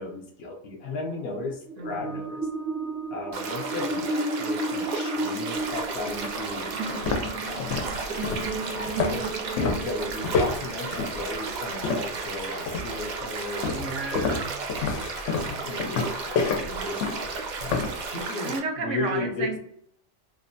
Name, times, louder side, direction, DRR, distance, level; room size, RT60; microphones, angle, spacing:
voice 1, 0.0-2.4 3.1-6.8 7.4-7.8 8.6-9.3 9.6-14.1 15.5-17.1 18.1-19.5, left 2 dB, 65° left, 3 dB, 0.8 m, -35 dB
sound 1, 1.7-11.0, right 2 dB, 5° left, 0.5 m, -33 dB
voice 2, 1.8-2.2 13.7-14.6 18.4-19.6, right 3 dB, 90° right, 3 dB, 1.0 m, -33 dB
sound 2, 3.3-18.6, right 4 dB, 60° right, 0.4 m, -34 dB
sound 3, 5.6-5.7 6.2-6.4 6.8-12.3 12.7-13.1 13.6-18.0, left 4 dB, 90° left, 0.9 m, -29 dB
2.9 x 2.1 x 2.5 m, 0.67 s
omnidirectional pair, 1.2 m